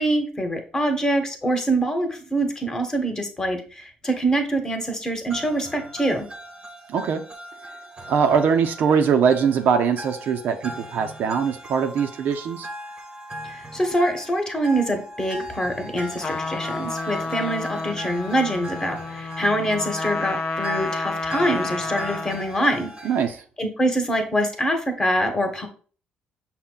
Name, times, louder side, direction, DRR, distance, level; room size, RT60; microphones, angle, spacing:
voice 1, 0.0-6.3 13.5-22.9 23.6-25.7, right 1 dB, 20° left, 5 dB, 1.1 m, -24 dB
sound 1, 5.3-23.3, equal, 30° right, 0.8 m, -39 dB
voice 2, 6.9-7.2 8.1-12.7 23.0-23.4, right 6 dB, 70° right, 6 dB, 0.6 m, -21 dB
Trumpet, 16.2-22.5, left 3 dB, 35° left, 0.5 m, -30 dB
5.6 x 2.2 x 3.7 m, 0.40 s
supercardioid pair, 80°, 3 cm